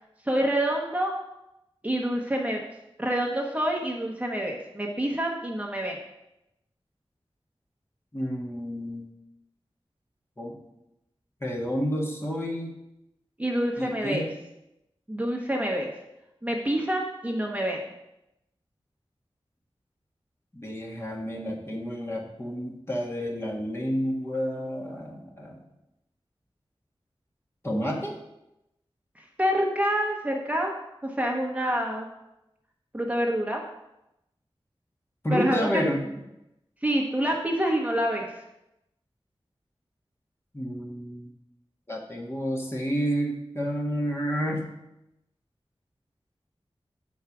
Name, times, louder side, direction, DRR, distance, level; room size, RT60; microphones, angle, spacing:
voice 1, 0.3-1.1 1.8-2.6 3.0-6.0 13.4-14.2 15.1-15.9 16.4-17.8 29.4-30.7 31.0-32.1 32.9-33.6 35.3-35.8 36.8-38.4, right 1 dB, 15° right, -1 dB, 1.1 m, -27 dB
voice 2, 8.1-9.1 10.4-10.6 11.4-12.8 13.8-14.3 20.5-25.6 27.6-28.2 35.2-36.1 40.5-41.3 41.9-44.7, equal, 25° left, -2 dB, 1.6 m, -30 dB
8.2 x 4.7 x 6.0 m, 0.89 s
wide cardioid pair, 70°, 10 cm